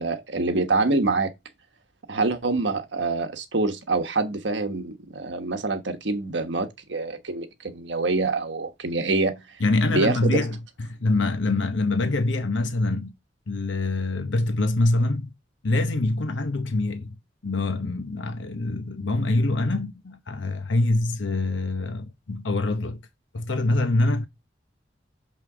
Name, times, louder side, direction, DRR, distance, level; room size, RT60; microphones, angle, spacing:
voice 1, 0.0-1.3 2.1-9.3 9.9-10.4, right 3 dB, 80° right, 1.3 m, -25 dB
voice 2, 9.6-13.1 13.5-15.3 15.6-17.2 17.4-23.0 23.3-24.3, left 2 dB, 90° left, 0.9 m, -25 dB
6.4 x 5.6 x 4.9 m
head